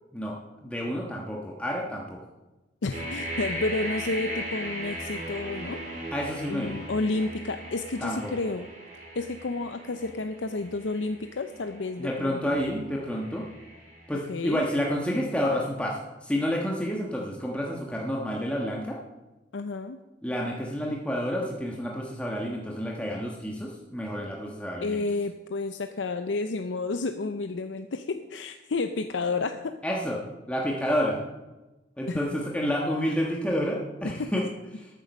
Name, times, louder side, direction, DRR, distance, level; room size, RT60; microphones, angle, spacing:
voice 1, 0.1-2.2 6.1-6.8 8.0-8.3 12.0-13.5 14.1-19.0 20.2-25.0 29.8-30.2 30.5-31.2 32.0-34.4, equal, 5° left, -2 dB, 1.3 m, -29 dB
voice 2, 2.8-5.8 6.5-8.7 9.1-12.6 14.3-14.6 19.5-20.0 24.8-29.7 32.1-32.2 34.1-34.3, left 3 dB, 90° left, 8 dB, 0.6 m, -31 dB
sound 1, 2.9-14.7, right 1 dB, 40° right, 2.9 m, -38 dB
13.0 x 9.1 x 5.4 m, 1.1 s
head